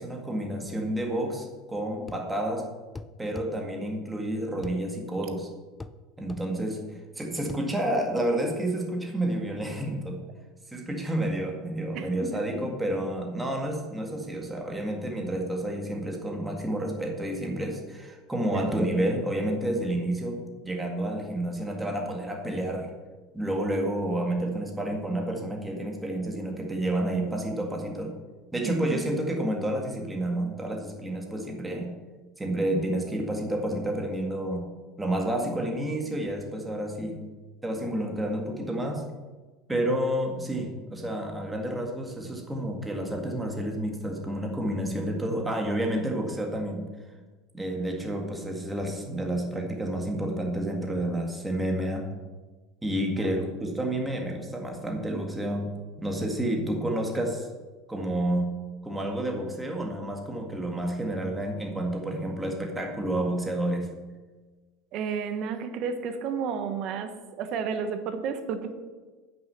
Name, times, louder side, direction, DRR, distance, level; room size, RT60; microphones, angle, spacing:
voice 1, 0.0-2.7 3.2-5.5 6.2-6.8 7.2-10.2 10.7-22.9 23.3-28.1 28.5-31.9 32.4-34.7 35.0-37.2 37.6-39.0 39.7-46.9 47.5-52.1 52.8-55.7 56.0-57.5 57.9-58.5 58.8-63.9, right 1 dB, 10° right, 1 dB, 1.8 m, -30 dB
sound 1, 2.1-2.3 3.0-3.5 4.6-4.8 5.8-6.0 6.3-6.5 7.5-7.7, left 3 dB, 15° left, 0.5 m, -40 dB
voice 2, 11.9-12.4 18.5-18.7 28.6-28.7 64.9-68.7, right 6 dB, 55° right, 9 dB, 1.2 m, -32 dB
9.0 x 6.4 x 6.8 m, 1.3 s
supercardioid pair, 105°, 0 cm